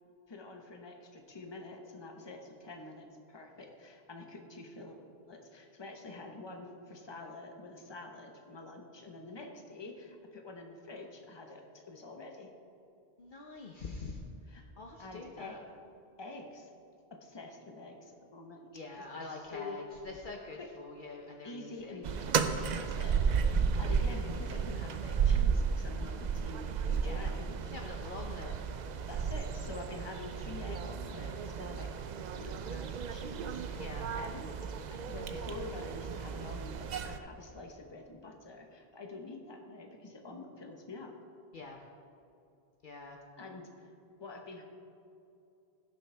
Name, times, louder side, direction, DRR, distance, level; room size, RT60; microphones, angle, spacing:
voice 1, 0.3-5.0 5.3-12.5 14.5-14.6 15.0-15.6 16.2-16.7 17.1-19.8 20.5-20.7 21.4-27.6 29.1-32.1 32.3-34.5 34.9-41.1 41.6-41.7 43.4-43.9 44.2-44.6, left 2 dB, 25° left, 2 dB, 1.0 m, -47 dB
voice 2, 13.2-14.2 14.8-15.6 18.7-22.0 27.0-27.3 27.7-28.5 33.8-34.0 41.5-41.8 42.8-43.2, left 3 dB, 55° left, 1 dB, 0.8 m, -45 dB
sound 1, 22.0-37.2, right 6 dB, 55° right, 0.5 m, -33 dB
16.5 x 6.3 x 3.4 m, 2.6 s
omnidirectional pair, 1.1 m